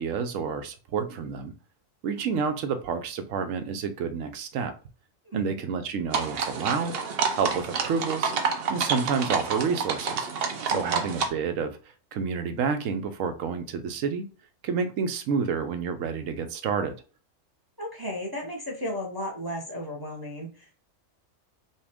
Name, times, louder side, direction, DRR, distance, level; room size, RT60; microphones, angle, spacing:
voice 1, 0.0-1.5 2.0-4.7 5.3-6.9 7.3-8.3 8.7-10.3 10.7-11.8 12.1-14.3 14.6-16.9, right 6 dB, 80° right, 8 dB, 1.0 m, -29 dB
voice 2, 5.2-5.6 10.7-11.1 17.8-20.8, equal, 20° right, 0 dB, 0.8 m, -34 dB
sound 1, 6.1-11.3, right 5 dB, 55° right, 0.8 m, -29 dB
5.5 x 2.4 x 3.5 m, 0.37 s
omnidirectional pair, 1.3 m